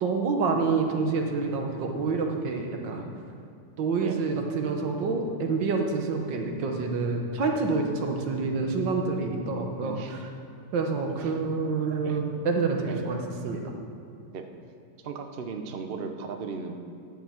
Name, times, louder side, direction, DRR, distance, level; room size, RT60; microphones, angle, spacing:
voice 1, 0.0-3.0 3.8-10.3 10.7-13.7, right 4 dB, 85° right, 2 dB, 1.8 m, -27 dB
voice 2, 9.8-10.1 11.2-11.4 12.0-12.2 12.9-13.0 14.3-14.4 15.0-16.8, right 5 dB, 55° right, 5 dB, 0.6 m, -37 dB
11.0 x 5.5 x 7.3 m, 2.4 s
omnidirectional pair, 1.9 m